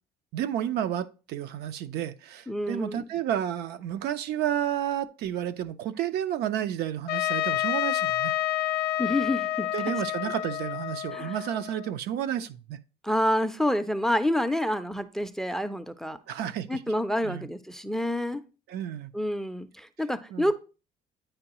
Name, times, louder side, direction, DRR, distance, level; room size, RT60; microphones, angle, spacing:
voice 1, 0.3-8.3 9.7-12.8 16.3-16.8 17.2-17.5 18.7-19.1 20.3-20.5, right 10 dB, 75° right, 0.4 m, -31 dB
voice 2, 2.5-3.0 9.0-9.7 11.1-11.3 13.0-16.2 16.7-18.4 19.1-20.5, left 1 dB, 5° left, 0.4 m, -28 dB
Trumpet, 7.1-11.9, left 14 dB, 70° left, 0.4 m, -29 dB
8.7 x 4.6 x 2.9 m
cardioid pair, 110°, 17 cm